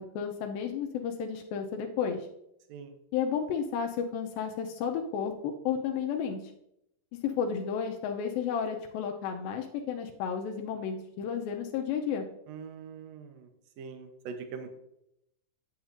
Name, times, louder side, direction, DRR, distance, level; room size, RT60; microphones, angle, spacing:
voice 1, 0.0-2.3 3.1-6.4 7.2-12.3, left 7 dB, 90° left, 3 dB, 2.5 m, -32 dB
voice 2, 12.5-13.3 13.8-14.8, right 5 dB, 70° right, 6 dB, 1.6 m, -42 dB
8.7 x 8.0 x 2.6 m, 0.78 s
omnidirectional pair, 4.1 m